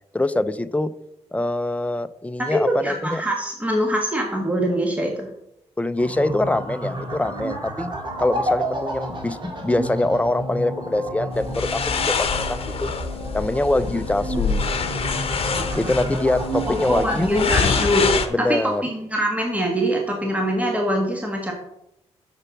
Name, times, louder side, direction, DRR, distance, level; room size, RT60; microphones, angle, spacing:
voice 1, 0.1-0.9 1.3-3.2 5.8-7.9 8.2-12.9 13.3-14.7 15.7-17.5 18.3-18.8, left 2 dB, 10° left, 12 dB, 0.6 m, -24 dB
voice 2, 2.4-5.3 16.7-18.0 18.4-21.5, equal, 10° right, 0 dB, 1.6 m, -23 dB
sound 1, 6.0-18.2, right 1 dB, 40° right, 2.2 m, -31 dB
sound 2, 11.4-18.3, left 5 dB, 55° left, 1.0 m, -25 dB
6.9 x 6.7 x 6.0 m, 0.81 s
cardioid pair, 95°, 12 cm